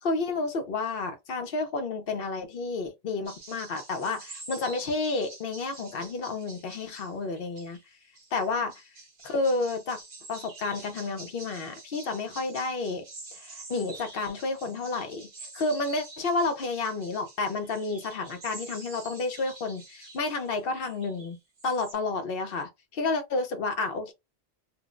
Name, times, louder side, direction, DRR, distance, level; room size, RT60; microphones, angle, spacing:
voice 1, 0.0-7.8 8.3-8.8 9.2-10.0 10.3-13.0 13.3-15.3 15.5-21.4 21.6-24.1, left 3 dB, 65° left, 0.9 m, -30 dB
sound 1, 3.2-21.9, right 2 dB, 60° right, 0.9 m, -47 dB
2.5 x 2.0 x 3.6 m
omnidirectional pair, 1.0 m